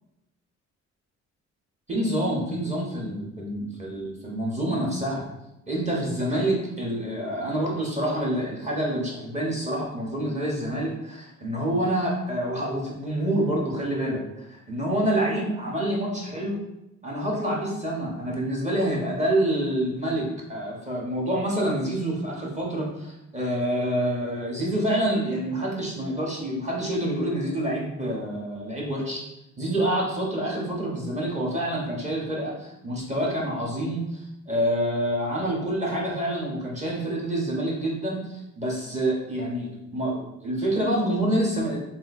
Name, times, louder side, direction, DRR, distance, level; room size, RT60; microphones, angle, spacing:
voice 1, 1.9-5.2 5.7-16.6 17.0-29.2 29.6-41.8, right 1 dB, 25° right, -4 dB, 1.4 m, -27 dB
3.6 x 2.7 x 4.2 m, 0.89 s
cardioid pair, 90°, 30 cm